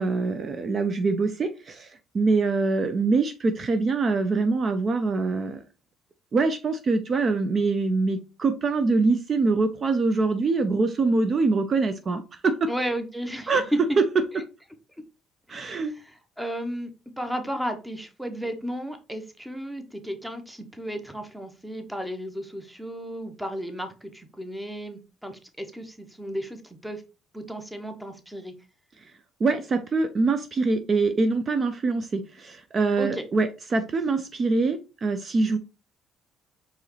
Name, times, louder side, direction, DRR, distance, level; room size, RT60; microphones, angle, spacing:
voice 1, 0.0-1.9 2.1-5.6 6.3-12.7 13.5-13.6 15.5-15.9 29.4-35.6, right 3 dB, 40° right, 8 dB, 0.5 m, -24 dB
voice 2, 12.7-13.5 15.5-16.9 17.2-27.0 27.3-28.5 33.0-33.2, equal, 5° right, 7 dB, 0.9 m, -34 dB
4.6 x 3.1 x 3.1 m, 0.31 s
supercardioid pair, 85°, 0 cm